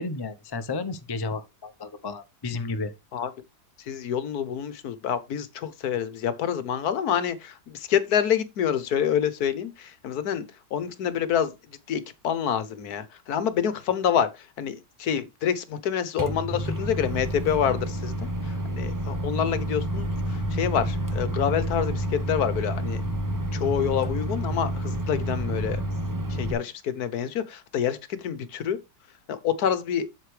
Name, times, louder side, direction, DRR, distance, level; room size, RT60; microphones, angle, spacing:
voice 1, 0.0-2.9, left 3 dB, 35° left, 0.4 m, -32 dB
voice 2, 3.8-10.4 10.7-11.5 11.9-23.0 23.5-25.8 26.3-28.8 29.3-30.1, left 8 dB, 65° left, 1.3 m, -27 dB
Microwave oven, 16.2-26.5, right 1 dB, 20° right, 0.5 m, -29 dB
8.0 x 7.5 x 3.2 m
omnidirectional pair, 1.9 m